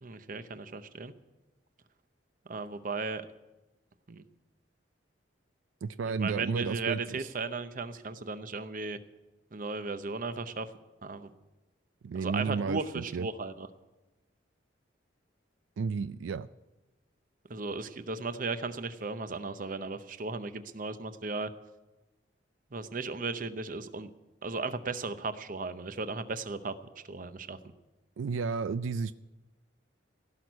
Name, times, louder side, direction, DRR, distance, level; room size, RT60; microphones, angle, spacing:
voice 1, 0.0-1.1 2.5-3.2 4.1-4.2 6.1-9.0 9.5-10.7 11.0-11.3 12.2-13.7 17.5-21.5 22.7-24.1 24.4-26.7 27.1-27.6, right 3 dB, 45° right, 11 dB, 0.7 m, -36 dB
voice 2, 5.8-7.3 12.0-13.3 15.8-16.5 28.2-29.1, right 5 dB, 85° right, 14 dB, 0.4 m, -32 dB
16.5 x 6.3 x 9.3 m, 1.1 s
head